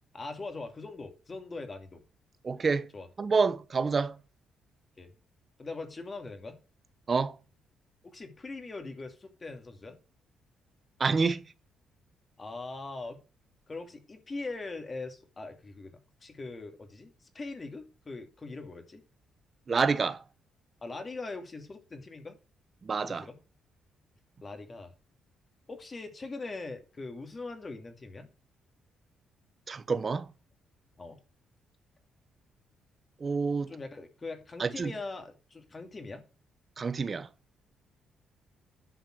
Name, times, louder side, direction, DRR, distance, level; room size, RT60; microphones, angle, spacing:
voice 1, 0.1-2.0 2.9-3.1 5.0-5.1 5.6-6.6 8.0-10.0 12.4-13.2 13.7-19.0 20.8-22.4 23.0-23.4 24.4-24.9 25.7-28.3 31.0-31.2 33.7-36.2, left 3 dB, 30° left, 2.4 m, -41 dB
voice 2, 2.4-2.9 3.2-4.2 7.1-7.4 11.0-11.4 19.7-20.2 22.8-23.3 29.7-30.3 33.2-33.7 34.6-34.9 36.8-37.3, right 4 dB, 35° right, 1.0 m, -28 dB
10.5 x 5.6 x 6.0 m
cardioid pair, 90°, 0 cm